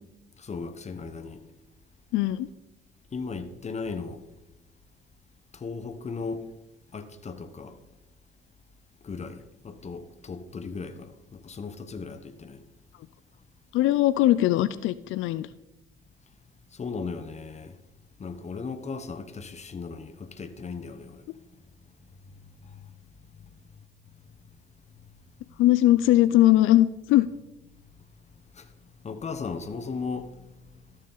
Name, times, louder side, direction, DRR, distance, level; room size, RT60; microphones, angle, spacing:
voice 1, 0.4-1.4 3.1-4.2 5.5-6.4 6.9-7.8 9.0-12.6 16.7-17.7 18.2-21.2 22.7-22.8 28.5-28.7 29.0-30.4, left 4 dB, 35° left, 1.0 m, -36 dB
voice 2, 2.1-2.5 13.7-15.5 25.6-27.3, left 14 dB, 90° left, 0.4 m, -20 dB
13.0 x 6.5 x 3.9 m
cardioid pair, 90°, 20 cm